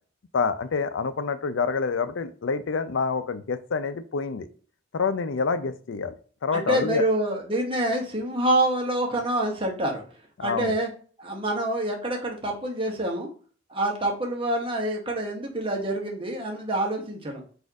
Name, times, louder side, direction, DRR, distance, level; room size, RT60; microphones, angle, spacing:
voice 1, 0.3-4.5 4.9-6.1 6.4-7.0 10.4-10.7, left 5 dB, 75° left, 11 dB, 0.5 m, -27 dB
voice 2, 6.5-10.0 10.4-10.9 11.2-13.3 13.7-17.4, right 1 dB, 30° right, 1 dB, 1.0 m, -26 dB
4.2 x 2.6 x 4.6 m, 0.42 s
head